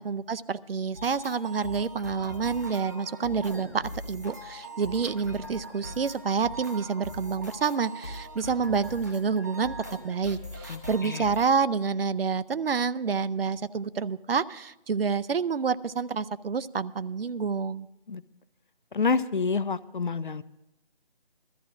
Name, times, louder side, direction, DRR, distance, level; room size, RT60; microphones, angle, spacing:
voice 1, 0.0-9.8 10.0-17.9, right 5 dB, 70° right, 15 dB, 0.6 m, -28 dB
sound 1, 0.9-11.5, equal, 20° right, 0.6 m, -41 dB
voice 2, 10.7-11.3 18.1-18.2 18.9-20.4, left 4 dB, 55° left, 17 dB, 0.5 m, -28 dB
21.5 x 13.5 x 2.5 m, 0.90 s
figure-of-eight pair, 170°, 30 cm